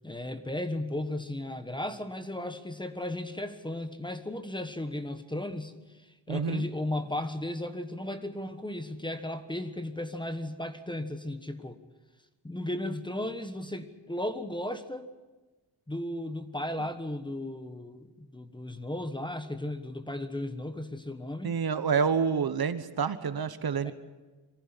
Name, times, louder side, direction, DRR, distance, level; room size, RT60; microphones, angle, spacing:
voice 1, 0.0-5.7 6.0-11.8 12.4-15.1 15.9-21.6 23.8-23.9, left 1 dB, 10° left, 9 dB, 1.3 m, -35 dB
voice 2, 6.3-6.7 21.4-23.9, right 6 dB, 50° right, 12 dB, 1.3 m, -28 dB
23.5 x 15.0 x 9.9 m, 1.2 s
wide cardioid pair, 135°, 46 cm